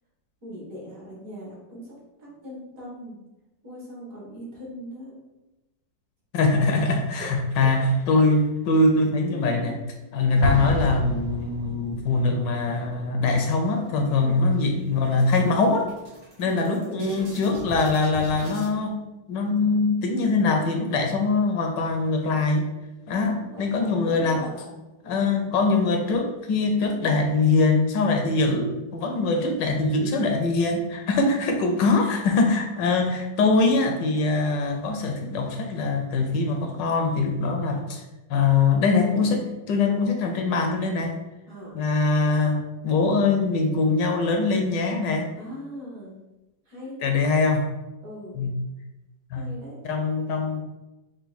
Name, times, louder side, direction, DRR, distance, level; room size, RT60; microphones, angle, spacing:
voice 1, 0.4-3.2 3.6-5.2 7.2-7.7 9.3-10.0 14.2-14.6 16.4-17.2 23.4-24.7 25.0-25.7 29.6-29.8 41.5-41.8 45.4-46.1 46.7-47.4 48.0-48.6 49.3-49.8, equal, 50° right, -5 dB, 1.8 m, -40 dB
voice 2, 6.3-9.7 10.1-15.9 16.4-19.0 19.3-22.6 23.1-24.5 25.0-38.0 38.3-41.2 41.7-45.3 47.0-47.7 48.4-48.5 49.3-49.4 49.8-50.6, left 3 dB, 75° left, 3 dB, 1.2 m, -23 dB
Explosion, 10.4-12.1, right 1 dB, 65° right, 0.9 m, -28 dB
sound 1, 13.4-14.1 14.5-14.6 14.9-18.7, right 1 dB, 85° right, 2.0 m, -42 dB
4.8 x 2.6 x 4.0 m, 1.0 s
omnidirectional pair, 2.0 m